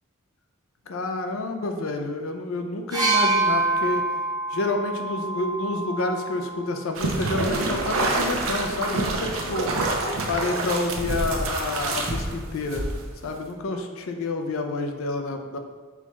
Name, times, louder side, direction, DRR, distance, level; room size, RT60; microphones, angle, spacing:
voice 1, 0.9-4.1 4.5-9.7 10.3-12.9 13.2-15.6, left 2 dB, 75° left, 5 dB, 0.5 m, -29 dB
sound 1, 2.9-6.7 7.8-7.9, right 3 dB, 20° right, 0.5 m, -26 dB
sound 2, 6.9-13.2, right 2 dB, 70° right, 0.6 m, -27 dB
4.5 x 2.3 x 4.1 m, 1.4 s
head